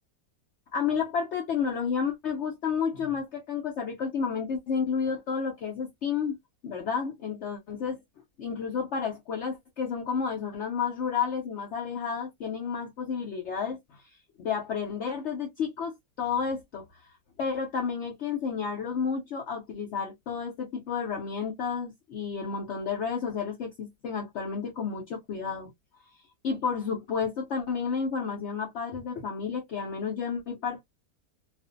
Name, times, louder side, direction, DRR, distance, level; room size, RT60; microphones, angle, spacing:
voice 1, 0.7-6.4 6.6-8.0 8.4-14.0 14.4-17.1 17.4-25.7 26.4-30.8, left 6 dB, 65° left, 0.6 m, -31 dB
2.5 x 2.5 x 2.4 m
omnidirectional pair, 1.9 m